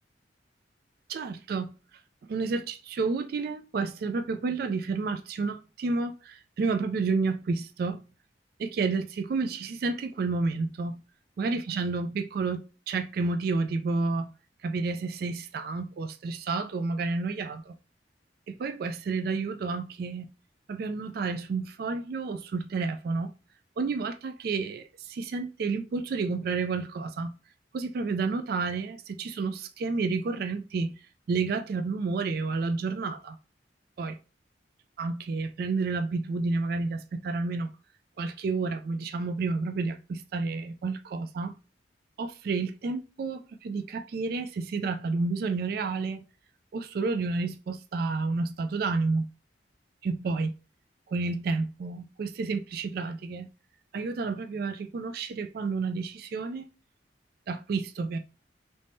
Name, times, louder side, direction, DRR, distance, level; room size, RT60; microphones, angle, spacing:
voice 1, 1.1-1.7 2.3-8.0 8.6-11.0 11.4-14.3 14.6-17.7 18.5-20.3 20.7-23.3 23.8-27.3 27.7-31.0 31.3-33.4 34.0-34.1 35.0-37.7 38.2-41.5 42.2-46.2 46.7-49.3 50.0-50.5 51.1-53.5 53.9-56.6 57.5-58.2, right 4 dB, 55° right, 0.3 m, -30 dB
3.4 x 3.1 x 2.6 m
head